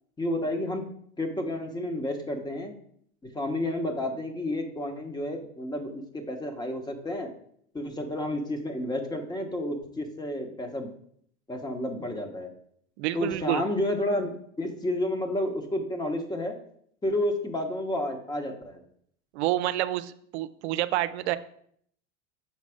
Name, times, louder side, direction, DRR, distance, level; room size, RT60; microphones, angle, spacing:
voice 1, 0.2-0.9 1.2-2.7 3.3-7.3 7.7-10.9 11.5-12.5 13.1-16.6 17.0-18.8, left 1 dB, 10° left, 5 dB, 1.1 m, -30 dB
voice 2, 13.0-13.6 19.3-21.4, right 15 dB, 90° right, 12 dB, 0.5 m, -28 dB
5.7 x 4.1 x 5.0 m, 0.66 s
supercardioid pair, 115°, 32 cm